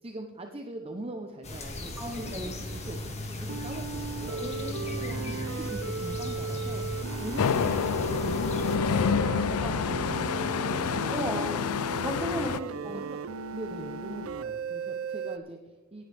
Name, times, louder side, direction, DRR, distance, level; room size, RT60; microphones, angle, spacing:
voice 1, 0.0-3.0 3.4-4.4 5.2-6.8 7.2-11.7 12.6-13.2 13.5-16.1, right 1 dB, 25° right, 4 dB, 0.8 m, -42 dB
sound 1, 1.4-8.8, left 1 dB, 30° left, 1.9 m, -37 dB
voice 2, 2.0-2.6 4.3-5.3 9.6-11.5 12.0-12.6 12.8-13.1, equal, 10° right, 3 dB, 1.5 m, -36 dB
sound 2, 3.5-15.4, right 5 dB, 65° right, 0.5 m, -36 dB
sound 3, 7.4-12.6, left 6 dB, 80° left, 0.4 m, -28 dB
18.0 x 9.5 x 3.4 m, 1.2 s
head